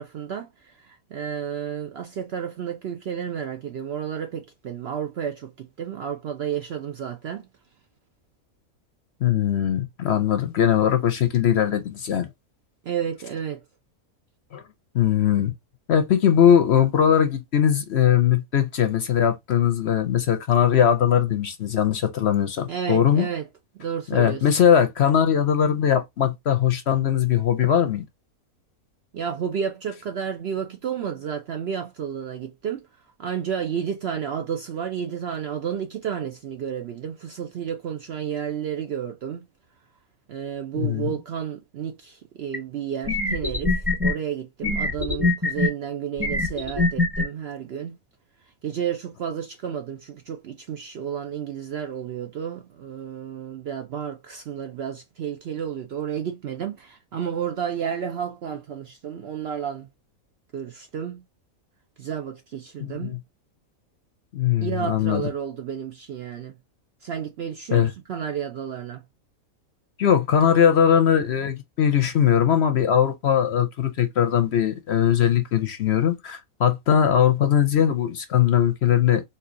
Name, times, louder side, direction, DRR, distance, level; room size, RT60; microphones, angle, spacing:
voice 1, 0.0-7.5 12.8-13.6 22.7-23.5 23.8-24.5 29.1-32.9 33.2-39.4 40.3-48.0 48.6-59.9 60.5-61.2 62.0-63.2 64.6-66.5 67.0-69.0, right 8 dB, 65° right, 0.6 m, -31 dB
voice 2, 9.2-12.3 14.5-14.6 14.9-15.5 15.9-23.3 24.1-28.0 40.7-41.1 62.8-63.2 64.3-65.2 67.7-67.9 70.0-79.2, left 9 dB, 60° left, 0.8 m, -20 dB
sound 1, 42.5-42.6 43.1-44.1 44.6-45.7 46.2-47.2, left 2 dB, 10° right, 1.0 m, -23 dB
4.4 x 2.7 x 2.5 m
omnidirectional pair, 1.5 m